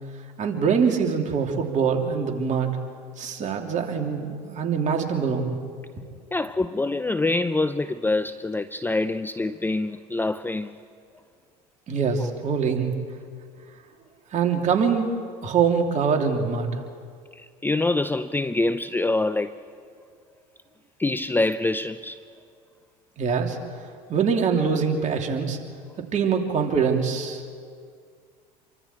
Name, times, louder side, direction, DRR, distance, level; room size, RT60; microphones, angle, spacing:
voice 1, 0.4-2.7 3.2-5.6 11.9-12.9 14.3-15.1 15.4-16.8 23.2-23.6 24.1-25.6 26.0-27.4, right 6 dB, 40° right, 3.1 m, -24 dB
voice 2, 6.3-10.8 12.2-12.3 17.6-19.5 21.0-22.2, left 2 dB, 10° left, 0.6 m, -25 dB
27.5 x 24.0 x 4.5 m
hypercardioid pair, 80°, 18 cm